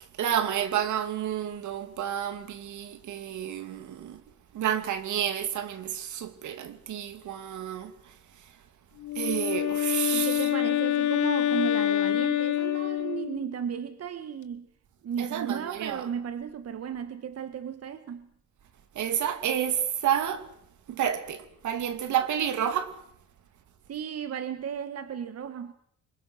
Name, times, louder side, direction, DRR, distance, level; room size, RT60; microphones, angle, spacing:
voice 1, 0.2-4.2 4.5-7.9 9.1-10.5 15.2-16.0 18.9-20.4 20.9-22.9, right 9 dB, 75° right, 2.8 m, -30 dB
Wind instrument woodwind instrument, 9.0-13.5, left 13 dB, 75° left, 1.8 m, -26 dB
voice 2, 10.1-14.7 15.0-18.3 23.9-25.7, right 8 dB, 55° right, 1.6 m, -34 dB
26.0 x 23.5 x 6.5 m
cardioid pair, 90°, 30 cm